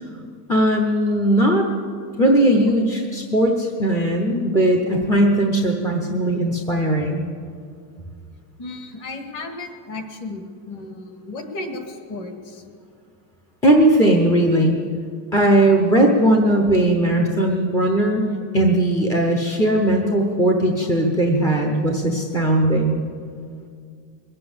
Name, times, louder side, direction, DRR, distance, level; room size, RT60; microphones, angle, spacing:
voice 1, 0.5-1.6 2.2-7.3 13.6-14.7 15.3-23.0, right 1 dB, 5° left, 0 dB, 0.5 m, -18 dB
voice 2, 8.6-12.7, left 2 dB, 35° left, 5 dB, 1.9 m, -34 dB
21.5 x 7.6 x 8.6 m, 2.2 s
cardioid pair, 175°, 50 cm